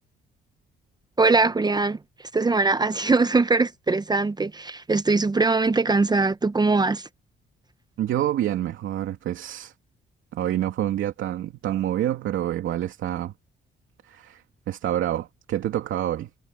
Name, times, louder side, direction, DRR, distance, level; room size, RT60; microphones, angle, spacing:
voice 1, 1.2-2.0 2.3-7.1, right 3 dB, 20° right, 0.8 m, -21 dB
voice 2, 8.0-9.7 10.3-13.3 14.0-16.3, right 12 dB, 80° right, 2.8 m, -27 dB
cardioid pair, 90°, 20 cm